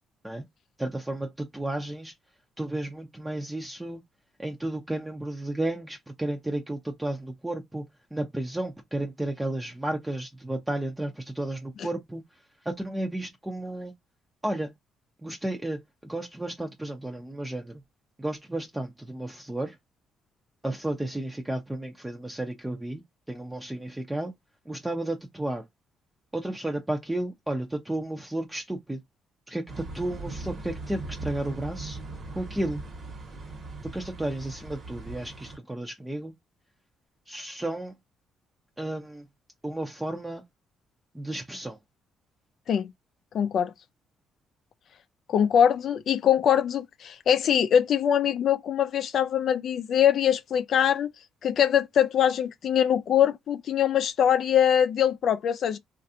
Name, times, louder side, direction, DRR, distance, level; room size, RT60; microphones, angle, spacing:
voice 1, 0.8-2.1 2.6-4.0 4.4-7.9 8.1-12.2 12.6-13.9 14.4-14.7 15.2-17.8 18.2-19.8 20.6-23.0 23.3-24.3 24.7-25.6 26.3-29.0 29.5-32.0 32.3-32.8 33.8-36.3 37.3-37.9 38.8-39.3 39.6-40.4 41.1-41.8, right 1 dB, 10° right, 0.6 m, -32 dB
sound 1, 29.7-35.6, right 2 dB, 50° right, 1.2 m, -39 dB
voice 2, 43.3-43.7 45.3-51.1 51.4-55.8, left 9 dB, 60° left, 0.4 m, -23 dB
3.2 x 2.5 x 2.7 m
cardioid pair, 90°, 0 cm